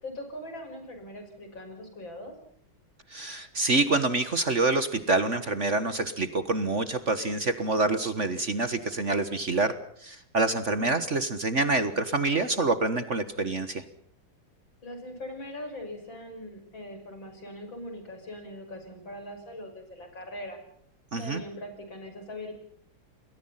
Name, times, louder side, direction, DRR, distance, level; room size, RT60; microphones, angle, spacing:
voice 1, 0.0-2.3 14.8-20.6 21.2-22.5, left 1 dB, 70° left, 6 dB, 6.9 m, -41 dB
voice 2, 3.1-9.7 10.0-13.8 21.1-21.4, right 3 dB, 40° right, 12 dB, 1.6 m, -26 dB
29.0 x 21.5 x 5.8 m, 0.62 s
omnidirectional pair, 2.2 m